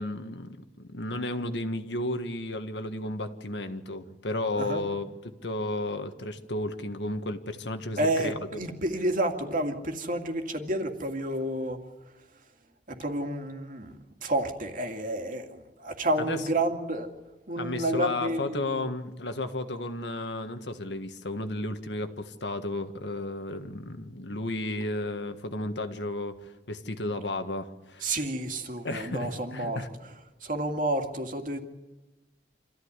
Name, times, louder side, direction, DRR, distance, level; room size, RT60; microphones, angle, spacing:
voice 1, 0.0-5.1 5.4-8.6 16.2-16.4 17.6-28.1 28.8-29.9, left 2 dB, 85° left, 8 dB, 1.6 m, -33 dB
voice 2, 8.0-12.4 12.9-17.1 17.5-18.9 28.0-31.6, right 1 dB, 50° right, 5 dB, 2.3 m, -30 dB
26.5 x 14.5 x 9.8 m, 1.1 s
head